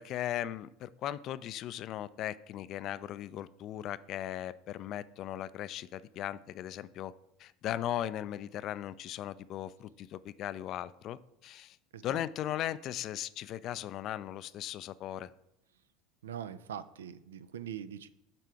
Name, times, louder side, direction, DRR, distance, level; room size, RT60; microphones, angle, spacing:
voice 1, 0.0-7.1 7.4-11.8 12.0-15.3, left 12 dB, 50° left, 16 dB, 0.3 m, -38 dB
voice 2, 16.2-18.1, right 9 dB, 80° right, 14 dB, 0.3 m, -42 dB
8.3 x 3.3 x 4.7 m, 0.81 s
hypercardioid pair, 75°, 0 cm